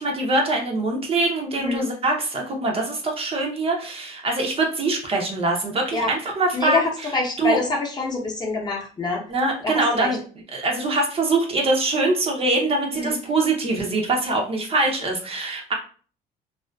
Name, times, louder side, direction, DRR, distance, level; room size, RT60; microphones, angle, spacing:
voice 1, 0.0-7.6 9.3-10.2 10.5-15.7, right 2 dB, 35° right, 0 dB, 0.6 m, -23 dB
voice 2, 6.5-9.2 9.6-10.1 12.9-13.2, left 3 dB, 25° left, -2 dB, 0.7 m, -25 dB
2.4 x 2.3 x 2.2 m, 0.41 s
cardioid pair, 110°, 17 cm